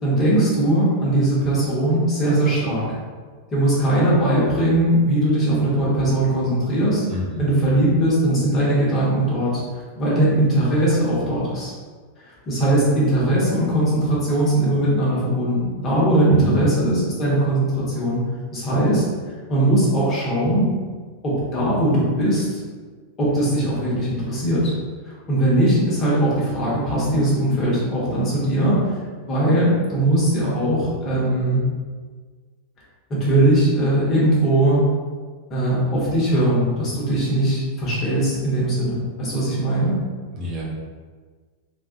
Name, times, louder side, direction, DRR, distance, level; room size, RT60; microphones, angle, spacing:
voice 1, 0.0-3.0 3.5-7.0 7.4-9.6 9.9-11.7 12.2-18.2 18.5-19.0 19.5-20.6 21.2-22.6 23.2-24.7 25.0-31.7 33.1-34.8 35.5-40.0, right 1 dB, 30° left, -7 dB, 1.2 m, -20 dB
voice 2, 7.1-7.5 16.3-16.8 40.4-40.6, right 1 dB, 30° right, -6 dB, 0.8 m, -26 dB
3.9 x 2.4 x 2.8 m, 1.5 s
figure-of-eight pair, 90°, 0 cm